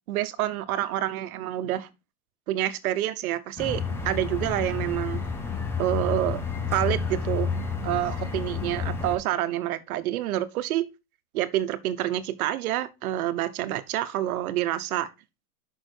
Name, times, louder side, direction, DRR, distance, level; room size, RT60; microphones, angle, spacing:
voice 1, 0.1-1.9 2.5-5.2 5.8-6.4 6.7-7.5 7.8-10.9 11.3-15.1, right 13 dB, 70° right, 1.1 m, -28 dB
sound 1, 3.6-9.2, left 5 dB, 5° left, 0.4 m, -30 dB
6.5 x 6.0 x 4.4 m
supercardioid pair, 150°, 45 cm